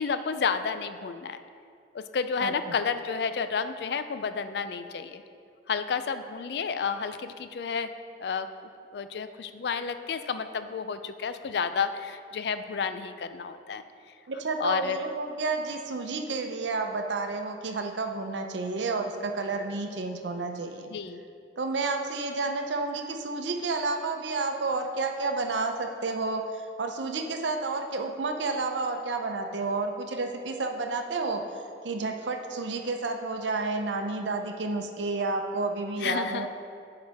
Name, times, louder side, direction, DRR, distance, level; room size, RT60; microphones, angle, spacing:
voice 1, 0.0-1.4 1.9-5.2 5.7-7.9 8.2-8.5 8.9-13.8 14.6-15.0 20.9-21.2 36.0-36.5, left 6 dB, 65° left, 11 dB, 0.4 m, -31 dB
voice 2, 14.3-20.9 21.6-31.4 31.8-36.5, right 3 dB, 90° right, 5 dB, 0.6 m, -30 dB
10.5 x 4.9 x 3.5 m, 2.4 s
head